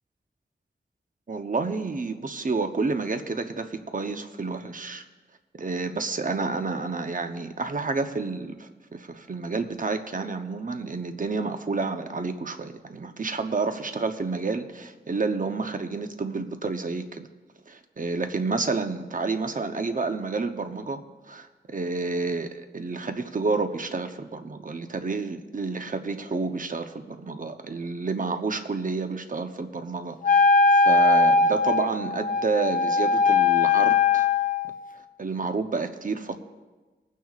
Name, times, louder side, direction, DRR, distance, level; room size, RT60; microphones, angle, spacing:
voice 1, 1.3-5.0 5.6-17.3 17.7-34.3 35.2-36.4, right 4 dB, 50° right, 7 dB, 0.8 m, -30 dB
Wind instrument woodwind instrument, 30.2-34.8, left 4 dB, 50° left, 0.6 m, -20 dB
24.0 x 9.3 x 2.4 m, 1.3 s
wide cardioid pair, 90°, 18 cm